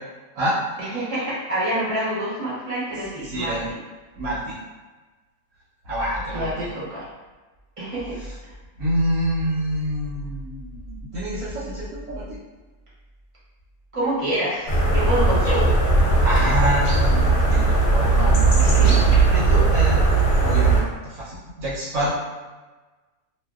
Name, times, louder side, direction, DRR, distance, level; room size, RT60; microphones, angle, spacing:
voice 1, 0.8-3.8 6.3-7.1 7.8-8.2 13.9-15.7 18.6-19.0, right 1 dB, 35° right, -9 dB, 0.5 m, -27 dB
voice 2, 3.2-3.7 4.2-4.5 5.8-6.7 8.2-8.3 8.8-12.4 15.4-15.5 16.2-20.1 20.4-22.1, right 1 dB, 85° right, -10 dB, 1.2 m, -27 dB
sound 1, 14.7-20.8, right 3 dB, 60° left, 0.8 m, -18 dB
2.6 x 2.1 x 2.3 m, 1.3 s
omnidirectional pair, 1.5 m